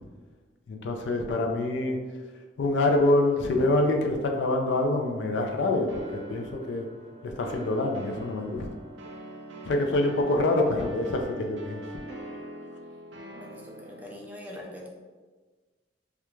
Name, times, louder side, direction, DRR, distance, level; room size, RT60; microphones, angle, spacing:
voice 1, 0.7-2.0 2.6-6.9 7.2-8.7 9.7-11.8, left 2 dB, 70° left, 3 dB, 0.3 m, -26 dB
sound 1, 5.9-14.1, right 1 dB, 70° right, 0.4 m, -43 dB
voice 2, 13.3-14.9, left 1 dB, 10° right, -2 dB, 0.4 m, -43 dB
2.4 x 2.2 x 3.0 m, 1.4 s
head